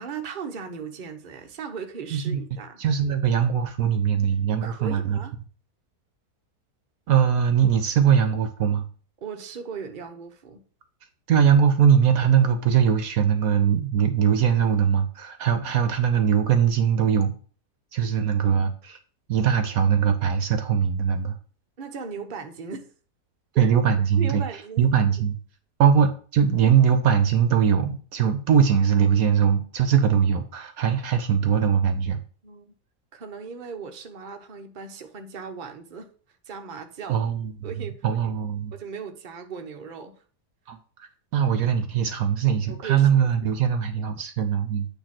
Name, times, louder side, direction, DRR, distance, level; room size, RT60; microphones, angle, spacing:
voice 1, 0.0-2.8 4.6-5.3 9.2-10.6 21.8-22.9 23.5-23.7 24.2-24.9 32.4-32.7 33.1-36.1 36.5-37.2 37.6-37.9 38.7-40.1 42.7-43.6, right 6 dB, 40° right, 0.9 m, -37 dB
voice 2, 2.1-2.4 2.8-5.2 7.1-8.8 11.3-17.3 17.9-19.0 19.3-21.4 23.6-24.4 24.8-25.4 25.8-32.2 37.1-37.7 38.0-38.7 40.7-40.8 41.3-44.9, right 8 dB, 65° right, 1.1 m, -21 dB
8.9 x 3.0 x 5.8 m
omnidirectional pair, 1.7 m